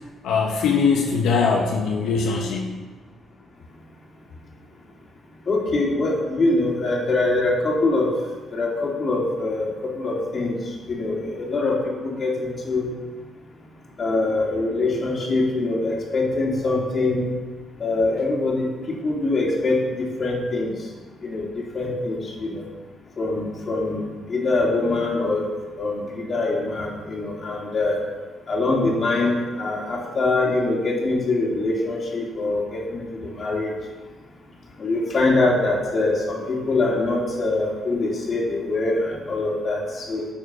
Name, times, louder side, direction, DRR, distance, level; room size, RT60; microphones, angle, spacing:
voice 1, 0.2-2.8, left 5 dB, 75° left, -1 dB, 1.5 m, -21 dB
voice 2, 5.5-8.1 8.5-10.6 10.9-12.9 14.0-17.3 17.8-18.7 19.0-20.7 21.2-21.5 21.7-22.6 23.2-25.5 25.8-28.0 28.5-33.7 34.8-40.3, left 2 dB, 35° left, -3 dB, 3.4 m, -23 dB
12.5 x 8.0 x 6.4 m, 1.3 s
cardioid pair, 150°, 0 cm